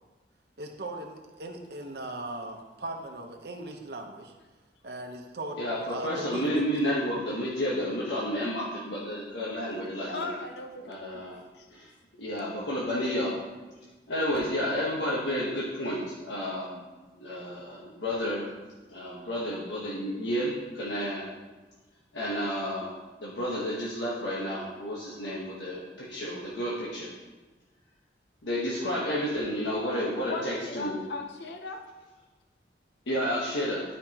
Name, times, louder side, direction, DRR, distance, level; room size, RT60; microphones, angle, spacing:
voice 1, 0.6-4.3 4.8-5.6 5.9-6.6, right 2 dB, 60° right, 3 dB, 0.9 m, -38 dB
voice 2, 5.6-10.2 10.9-11.4 11.7-11.9 12.2-13.4 14.1-16.8 17.2-18.5 18.9-21.3 22.1-22.9 23.2-27.1 28.4-31.0 33.1-33.8, equal, 90° left, -6 dB, 1.2 m, -31 dB
voice 3, 10.1-11.3 11.5-11.7 30.3-31.8 33.5-33.8, left 3 dB, 70° left, 5 dB, 0.6 m, -38 dB
12.0 x 5.1 x 2.9 m, 1.2 s
head